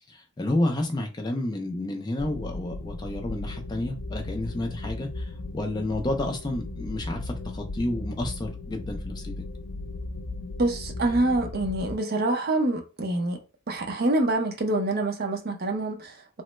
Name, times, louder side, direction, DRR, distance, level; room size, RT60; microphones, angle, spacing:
voice 1, 0.0-9.4, left 1 dB, 20° left, 0.3 m, -30 dB
sound 1, 2.2-11.9, left 2 dB, 85° left, 0.5 m, -36 dB
voice 2, 10.6-13.4 13.7-16.4, right 2 dB, 45° right, 0.5 m, -26 dB
3.0 x 2.0 x 3.1 m
head